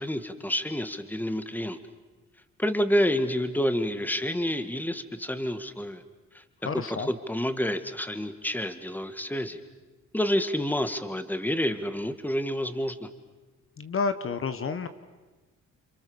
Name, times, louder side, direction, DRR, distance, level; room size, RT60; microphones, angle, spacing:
voice 1, 0.0-1.8 2.6-6.0 6.3-6.4 6.7-9.6 10.1-13.1, equal, 5° left, 10 dB, 1.9 m, -28 dB
voice 2, 6.6-7.1 13.8-14.9, left 5 dB, 45° left, 10 dB, 1.3 m, -30 dB
29.5 x 26.0 x 7.2 m, 1.2 s
cardioid pair, 90°, 30 cm